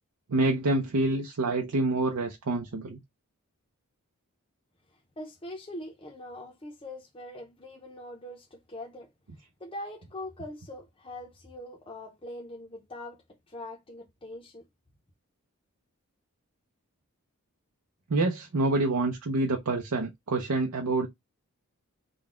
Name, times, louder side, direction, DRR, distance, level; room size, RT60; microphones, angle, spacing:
voice 1, 0.3-3.0 18.1-21.1, right 2 dB, 85° right, 0.7 m, -27 dB
voice 2, 5.2-9.1 9.6-13.2 13.5-14.6, left 1 dB, 25° left, 0.7 m, -42 dB
3.8 x 2.3 x 3.6 m
head